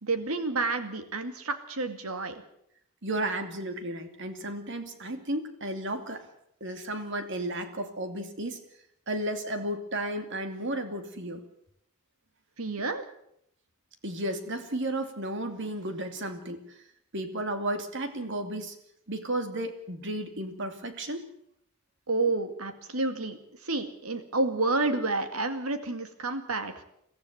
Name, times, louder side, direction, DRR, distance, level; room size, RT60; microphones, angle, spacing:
voice 1, 0.0-2.4 12.6-13.0 22.1-23.4 23.6-26.8, right 3 dB, 85° right, 8 dB, 2.2 m, -29 dB
voice 2, 3.0-6.3 6.6-8.6 9.1-11.4 14.0-16.6 17.1-18.8 19.1-21.3, right 1 dB, 55° right, 7 dB, 2.5 m, -33 dB
23.0 x 14.5 x 8.0 m, 0.75 s
head